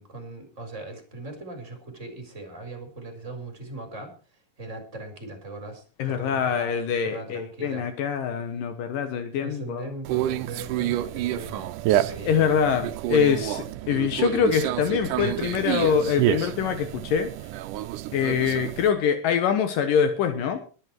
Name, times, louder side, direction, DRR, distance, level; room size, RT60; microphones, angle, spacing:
voice 1, 0.0-4.1 4.6-6.7 7.0-7.9 9.4-11.7 12.0-12.5, right 2 dB, 20° right, 5 dB, 4.5 m, -39 dB
voice 2, 6.0-9.9 12.3-17.3 18.1-20.6, left 7 dB, 75° left, 8 dB, 2.9 m, -24 dB
Conversation, 10.0-18.9, right 14 dB, 75° right, 2.1 m, -28 dB
21.5 x 8.9 x 4.6 m, 0.37 s
omnidirectional pair, 4.0 m